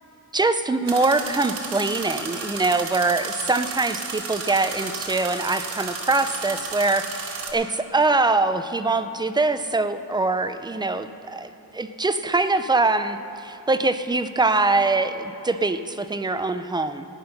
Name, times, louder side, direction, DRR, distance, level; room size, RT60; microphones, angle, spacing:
voice 1, 0.3-17.1, right 3 dB, 10° right, 10 dB, 0.3 m, -23 dB
sound 1, 0.9-7.5, right 4 dB, 90° right, 1.7 m, -33 dB
15.0 x 9.6 x 5.8 m, 2.9 s
wide cardioid pair, 150°, 38 cm